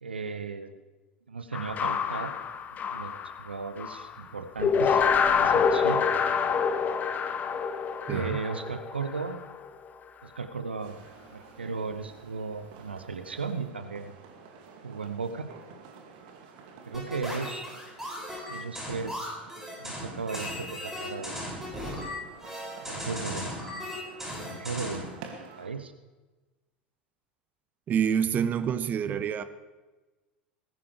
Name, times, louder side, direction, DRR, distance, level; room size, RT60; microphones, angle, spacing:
voice 1, 0.0-0.8 1.3-2.4 2.9-5.0 5.3-6.1 8.0-9.4 10.2-11.0 11.3-14.1 14.8-15.5 16.9-17.7 18.5-19.3 19.8-21.4 22.9-23.9 24.4-25.1 25.4-25.9, right 4 dB, 80° right, 9 dB, 0.9 m, -36 dB
sound 1, 1.5-4.2 4.6-9.7, left 6 dB, 30° left, 0.8 m, -27 dB
voice 2, 8.1-8.4 27.9-29.4, right 8 dB, 30° right, 13 dB, 0.7 m, -27 dB
sound 2, 10.8-25.7, right 5 dB, 55° right, 2.4 m, -50 dB
sound 3, 16.9-25.1, left 1 dB, 5° right, 6.6 m, -37 dB
19.5 x 16.0 x 3.4 m, 1.2 s
figure-of-eight pair, 80°, 6 cm